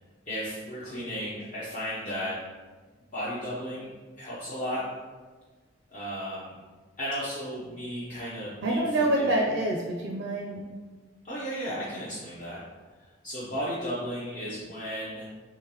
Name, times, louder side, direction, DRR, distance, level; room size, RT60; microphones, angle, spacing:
voice 1, 0.3-2.4 3.1-3.9 4.2-4.8 5.9-6.6 7.0-9.3 11.2-12.6 13.2-15.3, equal, 40° left, -9 dB, 0.7 m, -34 dB
voice 2, 8.6-10.6, right 1 dB, 75° right, 0 dB, 0.4 m, -26 dB
3.8 x 2.9 x 2.9 m, 1.4 s
head